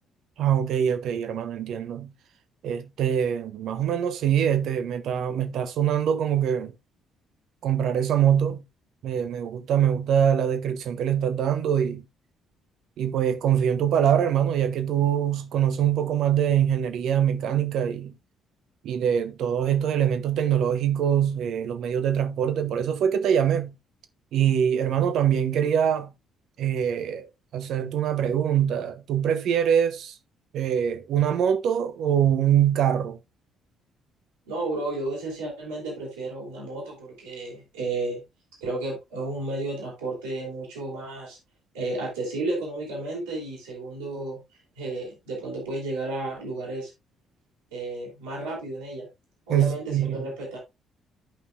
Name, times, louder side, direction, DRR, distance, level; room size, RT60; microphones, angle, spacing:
voice 1, 0.4-2.1 2.6-6.7 7.6-8.6 9.0-12.0 13.0-18.1 18.8-23.7 24.3-26.1 26.6-30.1 30.5-33.2 49.5-50.2, right 9 dB, 60° right, 1.0 m, -24 dB
voice 2, 34.5-38.2 38.6-41.4 41.7-44.4 44.8-46.9 47.7-49.1 49.5-50.6, right 2 dB, 80° right, 3.9 m, -32 dB
13.0 x 5.5 x 2.5 m
figure-of-eight pair, 45°, 0 cm